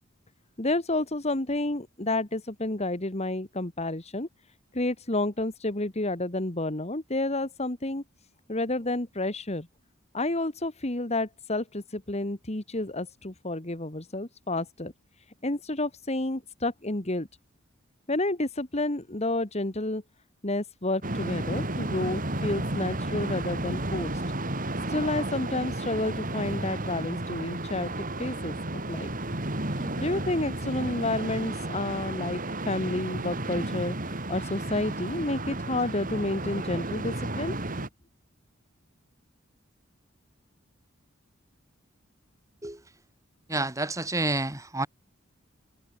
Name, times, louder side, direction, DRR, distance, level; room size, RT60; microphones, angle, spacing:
voice 1, 0.6-4.3 4.7-8.0 8.5-9.7 10.1-14.9 15.4-17.3 18.1-20.0 20.4-24.1 24.9-27.9 28.2-28.6 28.9-29.1 29.8-37.8, left 2 dB, 30° left, 2.0 m, -30 dB
sound 1, 21.0-37.9, right 1 dB, 40° right, 4.5 m, -32 dB
voice 2, 43.5-44.9, right 2 dB, 15° right, 2.5 m, -29 dB
head